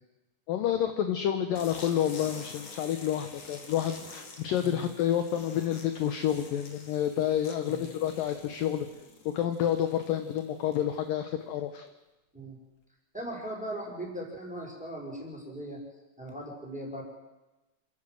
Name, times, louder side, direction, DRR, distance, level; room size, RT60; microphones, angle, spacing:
voice 1, 0.5-8.9 9.3-11.9, left 10 dB, 75° left, 8 dB, 2.1 m, -29 dB
sound 1, 1.5-11.0, left 4 dB, 40° left, 3.0 m, -48 dB
voice 2, 13.1-15.8 16.2-17.0, right 1 dB, ahead, 0 dB, 5.1 m, -39 dB
27.5 x 15.5 x 7.8 m, 1.1 s
omnidirectional pair, 5.2 m